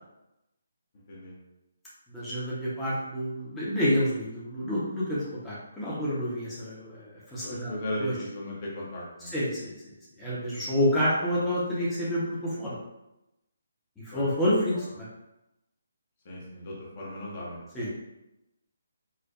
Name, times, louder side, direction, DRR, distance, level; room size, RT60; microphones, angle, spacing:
voice 1, 2.1-7.7 8.0-8.2 9.2-9.7 10.2-12.8 14.0-15.1 17.7-17.9, equal, 5° left, -10 dB, 0.8 m, -28 dB
voice 2, 7.4-9.3 14.1-14.3 16.2-17.7, left 1 dB, 40° left, -3 dB, 0.8 m, -36 dB
4.4 x 2.1 x 2.3 m, 0.91 s
figure-of-eight pair, 140°, 0 cm